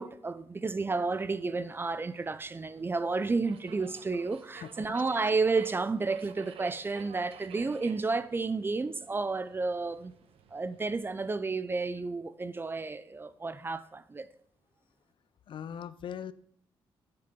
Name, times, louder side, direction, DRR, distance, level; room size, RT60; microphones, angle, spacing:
voice 1, 0.0-10.1 10.5-14.3, right 3 dB, 25° right, 0.5 m, -31 dB
Subway metro underground, 0.8-11.3, right 7 dB, 80° right, 0.8 m, -54 dB
voice 2, 4.6-5.0 15.5-16.3, left 8 dB, 60° left, 0.4 m, -40 dB
9.7 x 7.7 x 3.7 m
cardioid pair, 100°, 10 cm